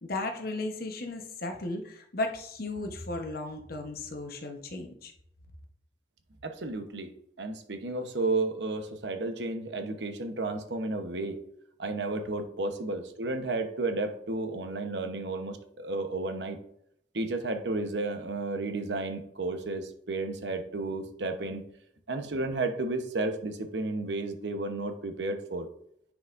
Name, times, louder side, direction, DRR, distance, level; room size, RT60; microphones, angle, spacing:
voice 1, 0.0-5.1, left 2 dB, 60° left, 4 dB, 1.0 m, -35 dB
voice 2, 6.4-7.1 7.4-11.4 11.8-16.6 17.1-21.6 22.1-25.7, right 2 dB, 80° right, 6 dB, 0.9 m, -32 dB
10.0 x 4.9 x 2.6 m, 0.72 s
head